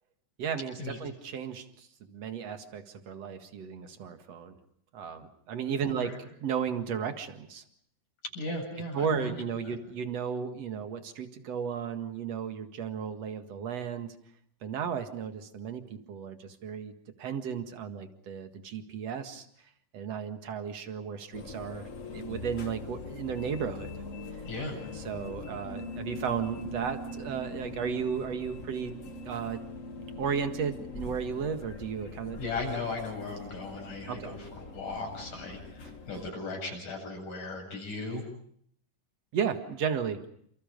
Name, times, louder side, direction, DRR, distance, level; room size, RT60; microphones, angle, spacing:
voice 1, 0.4-4.6 4.9-7.6 8.9-14.2 14.6-16.9 17.2-19.5 19.9-23.9 25.0-28.9 29.2-29.6 30.2-32.4 34.1-34.4 39.3-40.3, right 7 dB, 55° right, 8 dB, 2.8 m, -34 dB
voice 2, 5.8-6.2 8.2-9.3 9.7-9.8 24.4-24.8 32.4-38.2, left 3 dB, 70° left, 2 dB, 9.6 m, -37 dB
sound 1, 21.3-36.3, left 2 dB, 45° left, 1.0 m, -42 dB
29.5 x 27.5 x 5.4 m, 0.65 s
omnidirectional pair, 3.8 m